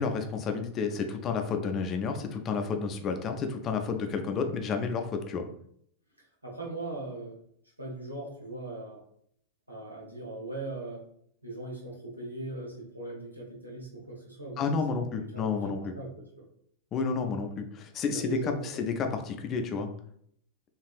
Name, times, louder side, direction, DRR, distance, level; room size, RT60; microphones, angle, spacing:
voice 1, 0.0-5.5 14.6-15.9 16.9-19.9, left 5 dB, 30° left, 5 dB, 0.4 m, -31 dB
voice 2, 6.4-7.4 7.8-9.0 9.7-11.0 11.4-16.4 18.1-18.8, right 2 dB, 85° right, -3 dB, 0.9 m, -40 dB
3.3 x 2.5 x 2.4 m, 0.67 s
figure-of-eight pair, 90°, 0 cm